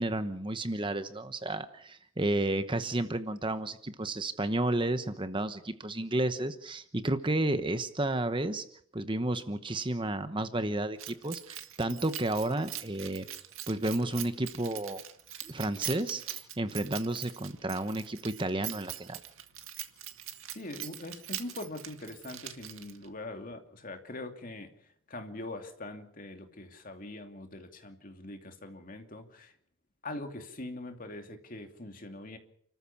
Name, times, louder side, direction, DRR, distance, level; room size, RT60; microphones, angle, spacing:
voice 1, 0.0-8.6 8.9-13.3 13.7-15.0 15.4-19.2, right 1 dB, 25° right, 10 dB, 1.0 m, -32 dB
Keys jangling, 11.0-23.1, right 12 dB, 85° right, 2.0 m, -43 dB
voice 2, 20.5-29.5 30.0-32.4, left 2 dB, 40° left, 5 dB, 2.7 m, -42 dB
30.0 x 14.0 x 7.2 m, 0.64 s
head